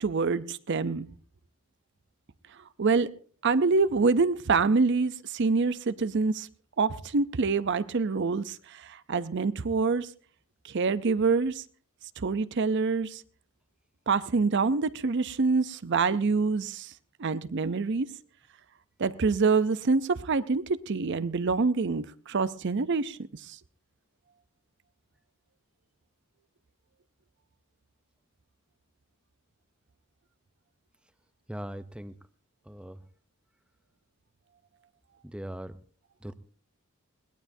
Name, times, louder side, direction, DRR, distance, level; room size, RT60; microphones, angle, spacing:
voice 1, 0.0-1.1 2.8-3.1 3.4-6.5 6.8-10.1 10.6-11.6 12.2-13.2 14.1-16.9 17.2-18.1 19.0-23.2 23.5-23.6, right 4 dB, 55° right, 0.6 m, -26 dB
voice 2, 31.5-32.1 32.6-33.0 35.2-35.8 36.2-36.3, equal, 5° right, 0.6 m, -39 dB
21.5 x 17.5 x 2.7 m
head